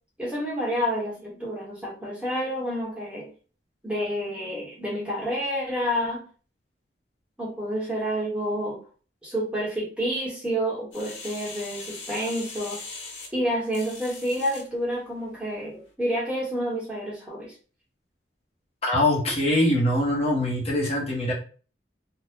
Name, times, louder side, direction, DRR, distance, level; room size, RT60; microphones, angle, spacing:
voice 1, 0.2-3.3 3.8-6.2 7.4-8.8 9.2-12.8 13.3-17.5, equal, 5° right, -5 dB, 1.0 m, -29 dB
sound 1, 10.9-14.7 15.2-15.3, left 4 dB, 90° left, 0.8 m, -40 dB
voice 2, 18.8-21.3, left 1 dB, 35° left, -5 dB, 1.0 m, -23 dB
2.8 x 2.2 x 3.4 m, 0.38 s
head